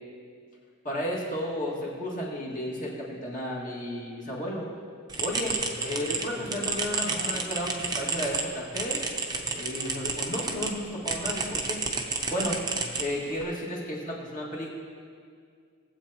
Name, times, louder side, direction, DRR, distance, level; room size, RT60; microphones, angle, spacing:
voice 1, 0.8-4.7 5.2-5.6 5.9-9.1 9.5-11.9 12.3-12.6 13.0-14.7, equal, 35° left, -5 dB, 2.0 m, -33 dB
sound 1, 5.1-10.7 11.1-13.4, right 4 dB, 20° right, 0.7 m, -31 dB
19.0 x 7.8 x 2.9 m, 2.2 s
head